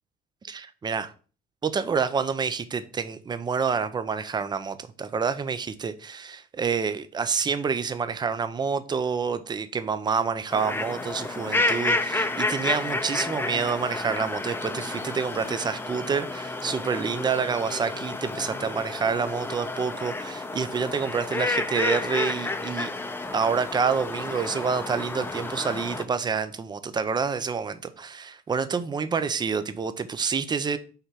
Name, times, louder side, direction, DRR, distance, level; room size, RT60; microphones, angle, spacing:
voice 1, 0.5-1.1 1.6-22.9 23.3-30.8, right 5 dB, 25° right, 0.6 m, -28 dB
sound 1, 10.5-26.0, left 2 dB, 15° left, 0.7 m, -30 dB
5.6 x 3.4 x 5.7 m
cardioid pair, 110°, 17 cm